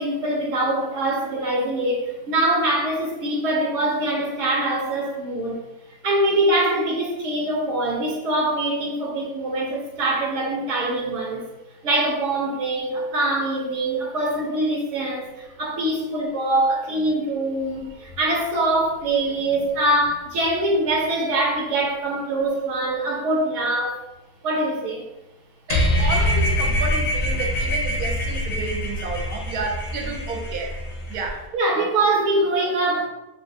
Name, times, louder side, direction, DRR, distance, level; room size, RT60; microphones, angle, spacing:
voice 1, 0.0-5.6 6.0-11.5 11.8-24.0 24.4-25.0 31.5-33.1, right 1 dB, 65° right, -2 dB, 1.1 m, -23 dB
sound 1, 25.7-31.3, left 1 dB, 60° left, 0.6 m, -24 dB
voice 2, 25.7-30.8 31.1-31.4, right 3 dB, 90° right, 2 dB, 1.2 m, -31 dB
5.3 x 2.3 x 2.6 m, 0.98 s
omnidirectional pair, 1.6 m